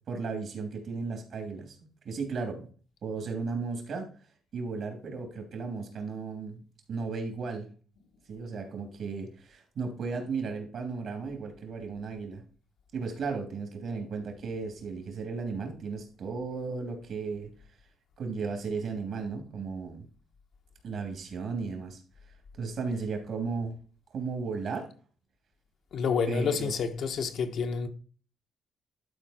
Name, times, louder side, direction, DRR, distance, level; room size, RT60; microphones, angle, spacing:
voice 1, 0.1-1.8 2.0-2.7 3.0-4.1 4.5-7.7 8.3-12.4 12.9-17.5 18.2-20.1 20.8-22.0 22.6-23.8 24.1-24.9 26.3-26.7, right 4 dB, 65° right, 2.8 m, -35 dB
voice 2, 25.9-27.9, left 6 dB, 70° left, 1.2 m, -29 dB
11.5 x 4.5 x 4.4 m
cardioid pair, 90°, 0 cm